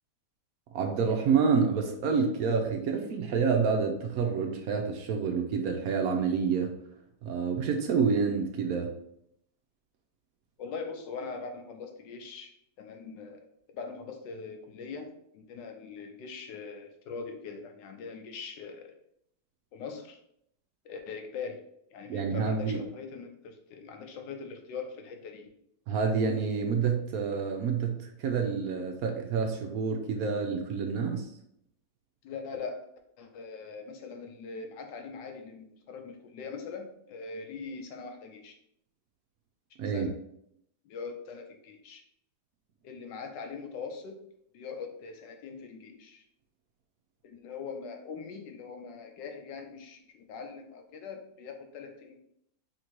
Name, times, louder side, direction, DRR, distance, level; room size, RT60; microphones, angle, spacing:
voice 1, 0.7-6.8 7.2-8.9 22.1-22.8 25.9-31.3 39.8-40.1, right 5 dB, 70° right, 3 dB, 0.9 m, -28 dB
voice 2, 10.6-13.4 13.7-18.9 19.7-20.2 20.8-21.6 21.9-25.5 32.2-32.8 33.2-38.5 39.8-40.1 40.8-42.0 42.8-44.2 44.5-46.2 47.2-52.2, left 5 dB, 85° left, 4 dB, 1.4 m, -42 dB
3.6 x 2.6 x 4.4 m, 0.73 s
omnidirectional pair, 1.9 m